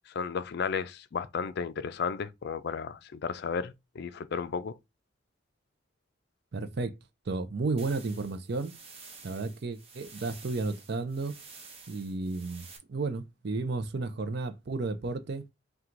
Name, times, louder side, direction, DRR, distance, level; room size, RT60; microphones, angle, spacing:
voice 1, 0.2-4.7, left 6 dB, 55° left, 0.4 m, -33 dB
voice 2, 6.5-6.9 7.3-8.7 9.2-11.3 11.9-12.6 12.9-15.4, right 3 dB, 55° right, 0.5 m, -32 dB
sound 1, 7.8-12.8, right 4 dB, 30° right, 1.0 m, -50 dB
4.5 x 2.3 x 3.8 m
head